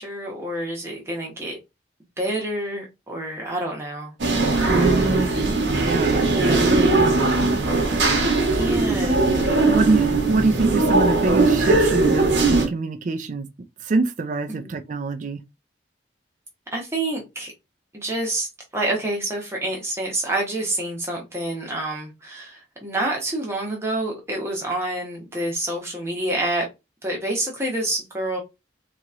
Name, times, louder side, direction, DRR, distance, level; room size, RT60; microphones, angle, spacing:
voice 1, 0.0-1.6 2.2-4.1 6.2-6.7 8.5-9.6 14.5-14.7 16.7-17.5 17.9-26.7 27.0-28.4, right 1 dB, 15° right, 1.0 m, -28 dB
sound 1, 4.2-12.7, right 3 dB, 70° right, 0.9 m, -19 dB
voice 2, 4.6-5.3 5.8-7.4 9.1-13.5 13.8-15.4, right 3 dB, 40° right, 0.4 m, -25 dB
2.9 x 2.9 x 2.5 m
head